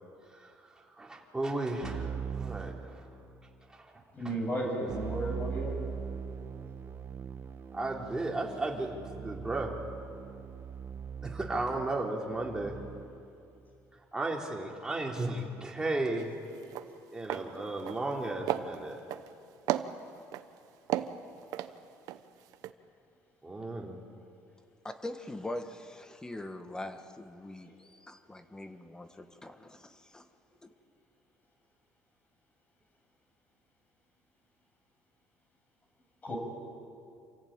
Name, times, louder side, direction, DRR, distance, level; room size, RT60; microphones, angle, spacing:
voice 1, 0.2-3.1 3.7-4.3 4.6-4.9 7.7-9.8 11.2-12.8 14.1-16.3 17.1-19.0 23.4-24.0, right 2 dB, 10° right, -1 dB, 3.4 m, -35 dB
Keyboard (musical), 1.8-3.5 4.9-13.3, right 7 dB, 40° right, 1.2 m, -41 dB
voice 2, 4.1-5.8 27.6-27.7 36.2-36.4, right 1 dB, 25° left, 1 dB, 7.0 m, -34 dB
sound 1, 16.2-16.3 16.6-16.9 17.2-17.5 17.8-18.2 18.5-19.3 19.7-20.4 20.9-22.2 22.5-22.7, right 13 dB, 75° right, 1.0 m, -33 dB
voice 3, 24.8-30.3 30.6-30.7, left 1 dB, 10° left, 8 dB, 1.5 m, -42 dB
28.0 x 15.5 x 8.9 m, 2.5 s
cardioid pair, 125°, 6 cm